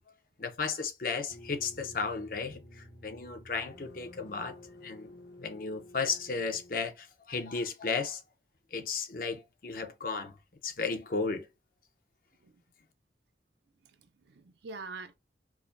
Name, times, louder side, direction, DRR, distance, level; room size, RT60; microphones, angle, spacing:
voice 1, 0.4-4.5 4.8-5.1 5.4-8.2 8.7-10.3 10.6-11.4, left 4 dB, 50° left, 0.7 m, -34 dB
sound 1, 1.3-6.9, left 1 dB, 65° left, 1.0 m, -51 dB
voice 2, 13.8-15.1, right 3 dB, 65° right, 0.5 m, -45 dB
4.7 x 2.1 x 2.6 m
head